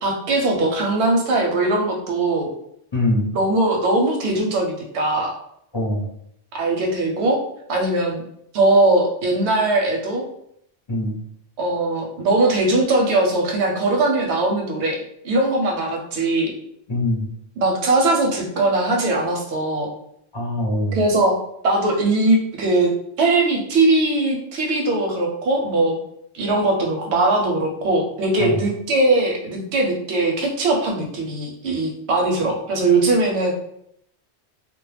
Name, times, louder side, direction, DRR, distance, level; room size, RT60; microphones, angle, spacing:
voice 1, 0.0-2.5 3.3-5.3 6.5-7.4 7.7-8.2 8.5-10.2 11.6-16.5 17.6-19.9 20.9-21.4 21.6-22.9 23.2-26.0 26.3-33.5, right 2 dB, 85° right, 0 dB, 0.9 m, -20 dB
voice 2, 2.9-3.3 5.7-6.1 10.9-11.1 16.9-17.3 20.3-21.0 28.4-28.6, left 1 dB, 30° left, -3 dB, 0.5 m, -22 dB
2.2 x 2.0 x 3.2 m, 0.74 s
omnidirectional pair, 1.1 m